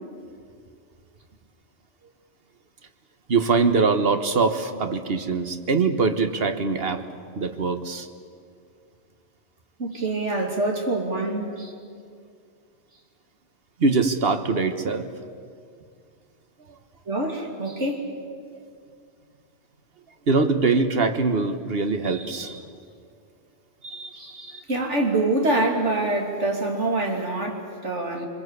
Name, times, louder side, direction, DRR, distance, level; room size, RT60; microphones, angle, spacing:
voice 1, 3.3-7.0 7.3-8.1 13.8-15.1 20.3-22.6 23.8-24.6, right 4 dB, 60° right, 8 dB, 1.5 m, -23 dB
voice 2, 9.8-11.7 17.1-18.1 24.1-28.3, right 2 dB, 85° right, 1 dB, 3.2 m, -25 dB
26.5 x 21.0 x 8.3 m, 2.2 s
omnidirectional pair, 1.2 m